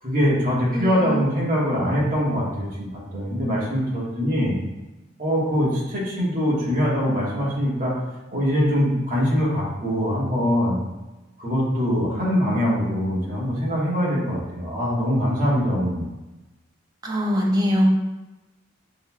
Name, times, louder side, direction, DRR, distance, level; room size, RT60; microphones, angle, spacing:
voice 1, 0.0-4.6 5.2-7.9 8.3-10.8 11.4-16.1, equal, 45° right, -6 dB, 1.4 m, -23 dB
voice 2, 0.7-1.2 17.0-17.9, equal, 20° right, -1 dB, 0.6 m, -22 dB
6.3 x 2.9 x 2.3 m, 1.1 s
head